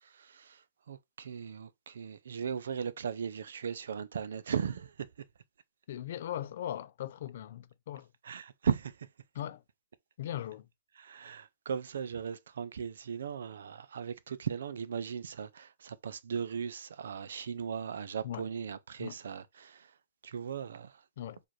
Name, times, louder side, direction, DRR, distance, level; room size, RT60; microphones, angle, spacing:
voice 1, 0.0-5.1 8.2-9.1 11.0-19.9 20.2-21.0, right 7 dB, 75° right, 0.5 m, -37 dB
voice 2, 5.9-8.1 9.3-9.6 10.2-10.7 18.2-18.4 19.0-19.2 21.2-21.4, left 11 dB, 60° left, 0.5 m, -39 dB
4.7 x 2.5 x 4.5 m
hypercardioid pair, 140°, 0 cm